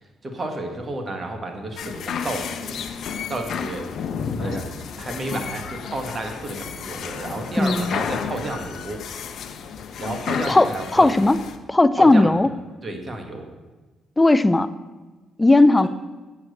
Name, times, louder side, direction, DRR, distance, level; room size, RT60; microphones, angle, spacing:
voice 1, 0.0-2.8 3.3-3.9 4.4-9.0 10.0-11.1 12.0-12.4 12.8-13.5, right 2 dB, 35° right, 4 dB, 1.7 m, -31 dB
sound 1, 1.8-11.6, left 6 dB, 65° left, 0.8 m, -32 dB
voice 2, 7.6-8.0 10.5-11.4 11.7-12.5 14.2-14.7 15.4-15.9, left 2 dB, 15° left, 14 dB, 0.5 m, -16 dB
8.2 x 7.3 x 6.6 m, 1.2 s
cardioid pair, 90°, 0 cm